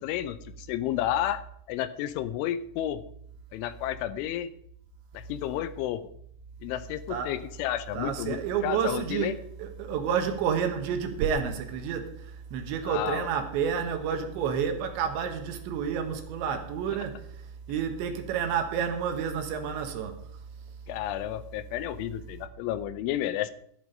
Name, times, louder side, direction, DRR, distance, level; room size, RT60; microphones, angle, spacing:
voice 1, 0.0-3.0 3.5-4.5 5.1-6.1 6.6-9.3 12.9-13.3 20.9-23.5, left 12 dB, 80° left, 3.0 m, -31 dB
voice 2, 7.9-17.4 17.7-20.2, right 7 dB, 70° right, 3.4 m, -30 dB
13.5 x 10.5 x 5.3 m
omnidirectional pair, 5.7 m